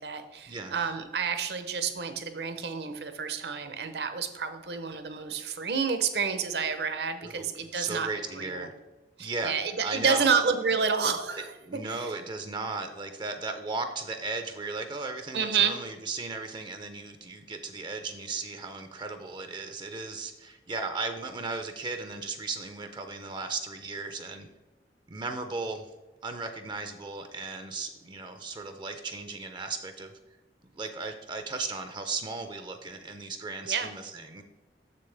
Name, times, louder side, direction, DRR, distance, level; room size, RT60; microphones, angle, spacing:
voice 1, 0.0-8.1 8.3-8.7 9.2-11.5 11.9-12.1 15.3-15.7 33.7-33.9, right 6 dB, 70° right, 8 dB, 0.8 m, -29 dB
voice 2, 7.7-8.7 9.2-10.3 11.7-24.5 25.1-25.9 26.2-30.1 30.7-34.4, right 3 dB, 25° right, 7 dB, 0.4 m, -36 dB
6.9 x 6.8 x 3.3 m, 1.1 s
head